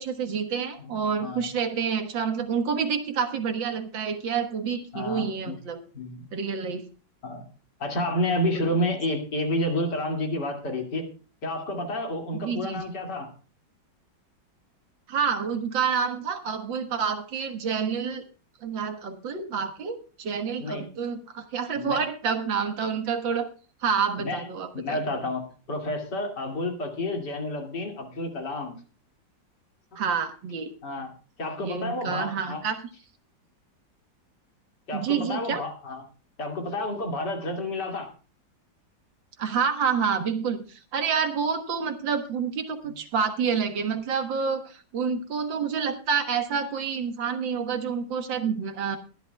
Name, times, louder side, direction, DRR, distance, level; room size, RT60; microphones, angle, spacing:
voice 1, 0.0-5.8 6.3-6.8 8.3-8.7 12.3-12.9 15.1-18.2 18.6-23.5 23.8-25.0 30.0-30.7 31.6-32.8 34.9-35.6 39.4-49.0, right 6 dB, 90° right, 7 dB, 2.2 m, -28 dB
voice 2, 0.8-1.5 4.9-5.6 5.9-6.3 7.2-7.4 7.8-11.1 11.4-13.3 20.6-20.9 21.8-22.0 24.2-24.5 24.7-28.8 30.8-32.6 34.9-36.0 36.4-38.1 42.8-42.9, left 1 dB, 65° left, 2 dB, 3.1 m, -30 dB
21.5 x 11.5 x 2.3 m, 0.37 s
omnidirectional pair, 2.0 m